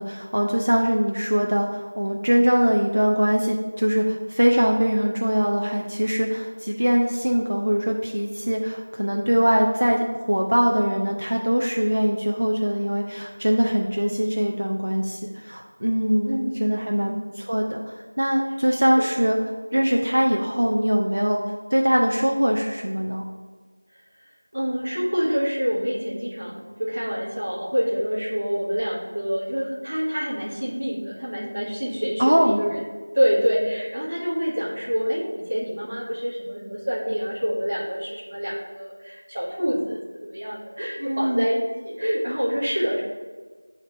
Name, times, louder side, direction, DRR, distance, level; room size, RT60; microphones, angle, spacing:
voice 1, 0.0-19.4 19.7-23.2 32.2-32.6 41.0-41.5, equal, 45° right, 0 dB, 0.5 m, -22 dB
voice 2, 16.2-17.1 19.0-19.1 24.5-32.8 33.1-41.6 41.8-43.0, equal, 15° right, -7 dB, 0.7 m, -26 dB
7.5 x 2.9 x 4.6 m, 1.4 s
figure-of-eight pair, 180°, 0 cm